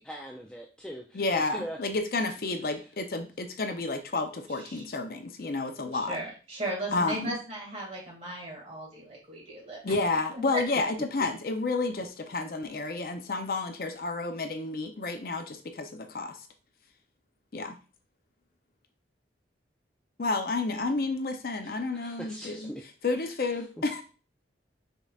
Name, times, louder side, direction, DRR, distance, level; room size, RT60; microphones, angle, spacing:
voice 1, 0.0-1.8 11.2-11.3 21.6-22.8 23.2-23.3, equal, 5° left, -1 dB, 0.4 m, -41 dB
voice 2, 1.1-6.2 6.9-7.3 9.8-16.4 17.5-17.8 20.2-22.7 23.0-24.0, left 3 dB, 55° left, 6 dB, 0.6 m, -30 dB
voice 3, 6.1-10.0, right 1 dB, 35° right, -3 dB, 2.1 m, -37 dB
5.2 x 3.9 x 2.3 m, 0.35 s
head